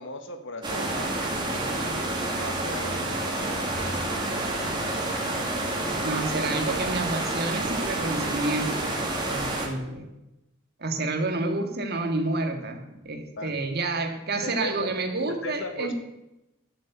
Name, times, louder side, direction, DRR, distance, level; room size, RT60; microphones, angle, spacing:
voice 1, 0.0-4.8 13.4-13.5 14.4-15.0 15.3-15.9, left 2 dB, 60° left, 7 dB, 1.6 m, -38 dB
sound 1, 0.6-9.7, right 2 dB, 20° right, 2.4 m, -29 dB
voice 2, 6.0-10.1 10.8-15.9, right 2 dB, 50° right, 5 dB, 1.9 m, -29 dB
11.0 x 7.8 x 8.1 m, 0.93 s
head